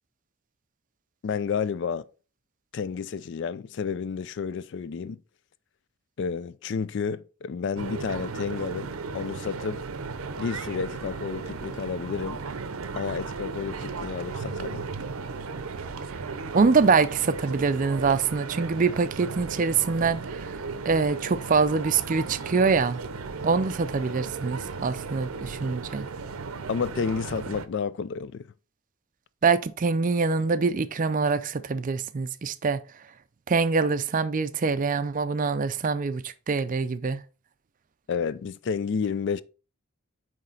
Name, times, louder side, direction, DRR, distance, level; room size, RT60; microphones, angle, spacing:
voice 1, 1.2-2.0 2.7-5.2 6.2-8.9 9.1-9.8 10.4-12.4 13.0-14.9 26.7-28.4 38.1-39.4, left 6 dB, 55° left, 0.3 m, -30 dB
sound 1, 7.8-27.7, right 4 dB, 85° right, 0.6 m, -36 dB
voice 2, 16.5-20.6 20.9-23.0 23.4-26.1 29.4-32.8 33.5-37.2, right 4 dB, 40° right, 0.4 m, -24 dB
9.0 x 3.2 x 3.9 m
head